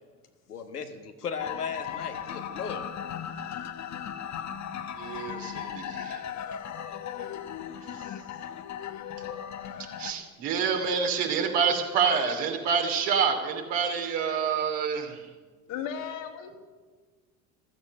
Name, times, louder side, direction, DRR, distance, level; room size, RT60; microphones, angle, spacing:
voice 1, 0.5-2.8, left 6 dB, 85° left, 5 dB, 1.4 m, -36 dB
sound 1, 1.4-10.1, left 9 dB, 40° left, 1.1 m, -37 dB
voice 2, 4.9-6.2 7.2-7.3 7.9-8.0 9.8-15.3, right 6 dB, 60° right, 3 dB, 2.9 m, -28 dB
voice 3, 15.7-16.6, left 8 dB, 65° left, 3 dB, 2.3 m, -35 dB
15.0 x 13.5 x 6.6 m, 1.4 s
figure-of-eight pair, 60°, 45 cm